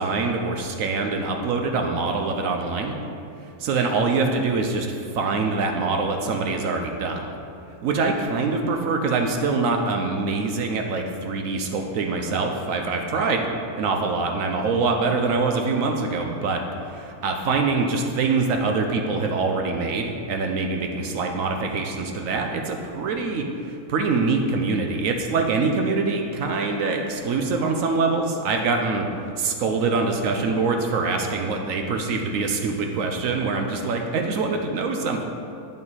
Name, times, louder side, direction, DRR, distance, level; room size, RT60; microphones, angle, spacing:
voice 1, 0.0-3.0 3.6-7.3 7.8-13.5 13.8-29.1 29.4-35.2, right 4 dB, 65° right, 3 dB, 0.9 m, -24 dB
9.0 x 5.4 x 4.1 m, 2.6 s
omnidirectional pair, 1.6 m